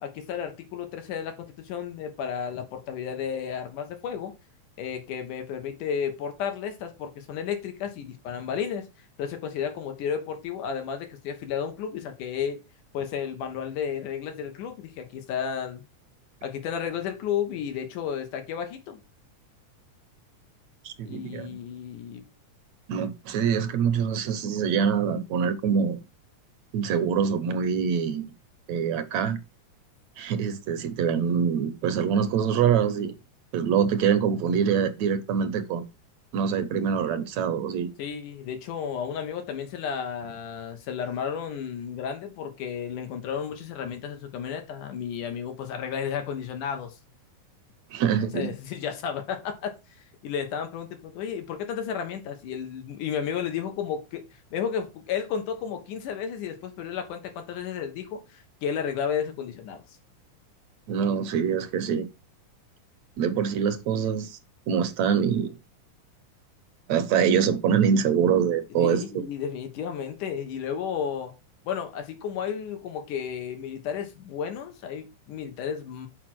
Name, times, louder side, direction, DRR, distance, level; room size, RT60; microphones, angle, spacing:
voice 1, 0.0-4.3 4.8-8.9 9.2-12.6 12.9-15.8 16.4-19.0 21.1-22.2 38.0-47.0 48.3-49.8 50.2-54.2 54.5-59.8 68.8-71.3 71.6-76.1, left 7 dB, 90° left, 2.9 m, -32 dB
voice 2, 20.9-21.6 22.9-26.0 26.7-28.3 28.7-29.4 30.2-33.1 33.5-35.8 36.3-37.9 47.9-48.5 60.9-62.1 63.2-64.4 64.7-65.5 66.9-69.0, right 7 dB, 70° right, 1.9 m, -24 dB
6.9 x 4.8 x 6.1 m
omnidirectional pair, 3.5 m